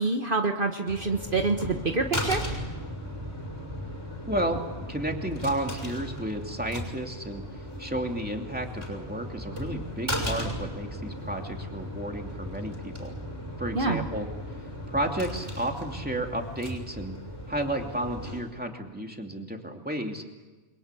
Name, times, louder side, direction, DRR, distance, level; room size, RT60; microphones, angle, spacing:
voice 1, 0.0-2.4 13.7-14.1, right 3 dB, 50° right, 3 dB, 1.6 m, -26 dB
sound 1, 0.9-18.4, equal, 25° right, 6.4 m, -36 dB
voice 2, 4.3-7.4 7.8-13.1 13.6-14.3 14.9-17.1 17.5-20.2, right 1 dB, 10° right, 2 dB, 2.7 m, -32 dB
29.0 x 23.0 x 8.4 m, 1.2 s
omnidirectional pair, 1.1 m